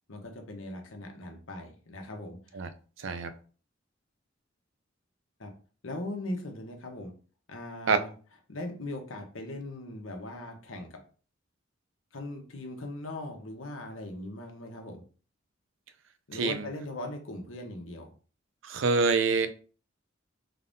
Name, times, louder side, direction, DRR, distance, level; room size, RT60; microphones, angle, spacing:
voice 1, 0.1-2.6 5.4-5.5 5.8-7.1 7.5-8.1 8.5-11.0 12.1-15.0 16.3-18.1, left 1 dB, 85° left, 1.0 m, -39 dB
voice 2, 3.0-3.3 7.9-8.0 16.4-16.7 18.6-19.5, right 4 dB, 70° right, 0.5 m, -26 dB
3.9 x 3.5 x 2.6 m
head